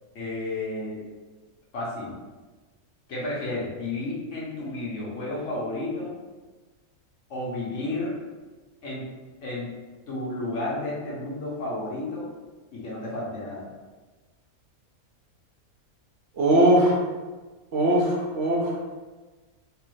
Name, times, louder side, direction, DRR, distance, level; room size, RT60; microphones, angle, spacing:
voice 1, 0.1-1.0 1.7-2.2 3.1-6.1 7.3-8.1 8.8-9.0 9.4-9.7 10.1-12.3 12.7-13.7, left 2 dB, 60° left, -5 dB, 1.1 m, -32 dB
voice 2, 16.4-17.0 17.7-18.8, right 1 dB, 60° right, -4 dB, 0.9 m, -20 dB
3.3 x 2.5 x 3.1 m, 1.3 s
omnidirectional pair, 1.5 m